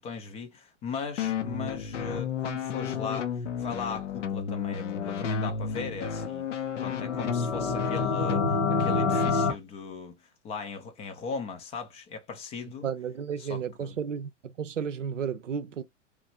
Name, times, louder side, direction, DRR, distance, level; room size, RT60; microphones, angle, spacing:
voice 1, 0.0-6.5 6.8-10.2 10.4-12.9 13.4-13.9, left 5 dB, 20° left, 0.4 m, -38 dB
sound 1, 1.2-9.3, left 7 dB, 75° left, 0.7 m, -32 dB
sound 2, 7.0-9.5, left 4 dB, 60° left, 1.1 m, -27 dB
voice 2, 12.8-15.8, right 7 dB, 80° right, 0.6 m, -33 dB
3.1 x 2.4 x 2.7 m
figure-of-eight pair, 95°, 36 cm